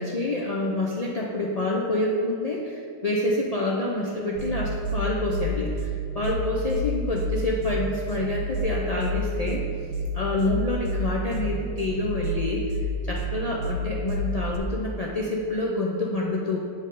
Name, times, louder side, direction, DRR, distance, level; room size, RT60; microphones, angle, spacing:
voice 1, 0.0-9.6 10.1-12.8 13.1-16.6, left 2 dB, 85° left, -3 dB, 0.3 m, -27 dB
sound 1, 4.3-14.6, equal, 80° right, 1.1 m, -30 dB
7.5 x 3.4 x 5.3 m, 2.4 s
omnidirectional pair, 1.5 m